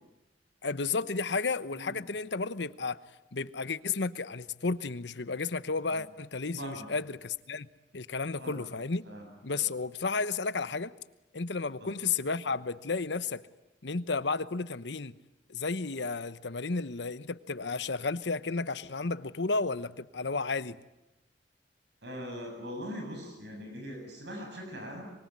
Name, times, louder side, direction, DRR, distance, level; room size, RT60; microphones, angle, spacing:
voice 1, 0.6-3.0 3.3-7.7 7.9-9.1 9.4-10.9 11.3-13.5 13.8-15.2 15.5-20.8, left 4 dB, 75° left, 14 dB, 1.0 m, -32 dB
voice 2, 6.6-6.9 8.4-8.6 9.1-9.7 11.8-11.9 22.0-25.1, equal, 70° right, 2 dB, 7.3 m, -41 dB
24.5 x 24.5 x 9.7 m, 0.97 s
head